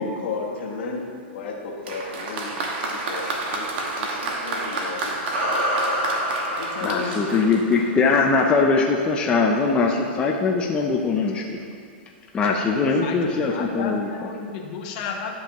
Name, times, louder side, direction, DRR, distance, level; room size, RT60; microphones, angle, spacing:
voice 1, 0.0-3.7 4.0-7.8, left 3 dB, 70° left, 0 dB, 1.4 m, -34 dB
Applause, 1.8-8.3, right 2 dB, 60° right, 1.3 m, -30 dB
sound 1, 5.3-8.1, equal, 80° right, 2.0 m, -27 dB
voice 2, 6.8-11.6 12.3-14.1, left 4 dB, 15° left, -1 dB, 0.5 m, -21 dB
voice 3, 12.7-15.4, left 5 dB, 45° left, 1 dB, 1.0 m, -33 dB
12.0 x 5.4 x 3.0 m, 2.2 s
hypercardioid pair, 150°, 6 cm